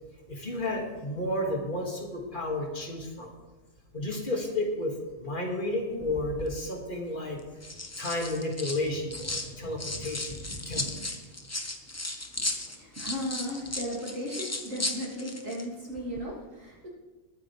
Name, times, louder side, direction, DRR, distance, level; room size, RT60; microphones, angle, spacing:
voice 1, 0.3-3.3 3.9-7.4 8.0-11.0, left 1 dB, 35° left, 0 dB, 2.3 m, -32 dB
sound 1, 6.0-6.5 7.4-9.5 9.8-15.6 15.9-16.2, left 2 dB, 15° left, 0.7 m, -36 dB
voice 2, 12.4-16.9, equal, 70° right, -4 dB, 3.5 m, -36 dB
20.0 x 9.3 x 3.4 m, 1.2 s
omnidirectional pair, 1.4 m